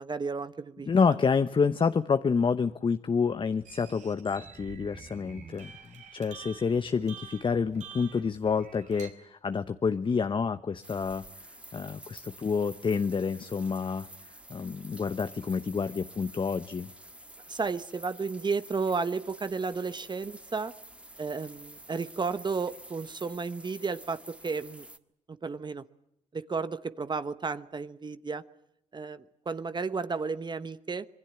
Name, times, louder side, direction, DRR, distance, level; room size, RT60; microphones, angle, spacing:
voice 1, 0.0-0.9 17.5-20.7 21.2-24.8 25.3-25.8 26.3-28.4 28.9-31.1, right 4 dB, 35° right, 13 dB, 1.0 m, -33 dB
voice 2, 0.9-14.1 14.5-16.9, left 5 dB, 40° left, 11 dB, 0.9 m, -28 dB
Sweet Noise, 3.6-9.1, right 6 dB, 65° right, 3.9 m, -48 dB
sound 1, 10.8-25.0, right 1 dB, 10° right, 1.6 m, -49 dB
26.5 x 20.5 x 8.9 m, 0.77 s
supercardioid pair, 60°, 13 cm